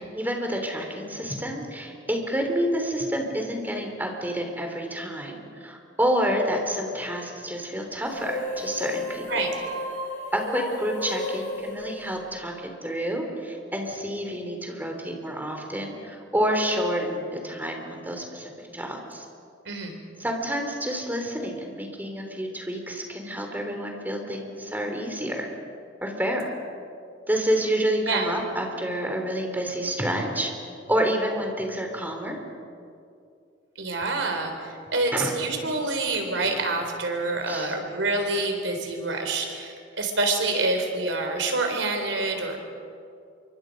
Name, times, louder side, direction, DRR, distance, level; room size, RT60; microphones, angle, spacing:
voice 1, 0.1-9.5 10.3-19.2 20.2-25.5 26.0-26.5 27.3-30.5 30.9-32.4 35.1-35.3 37.5-37.7, equal, 10° right, 3 dB, 3.3 m, -28 dB
sound 1, 8.0-12.8, left 1 dB, 40° left, 7.0 m, -33 dB
voice 2, 19.7-20.0 28.1-28.3 33.8-42.6, right 2 dB, 85° right, 4 dB, 3.8 m, -27 dB
28.0 x 24.5 x 5.3 m, 2.5 s
head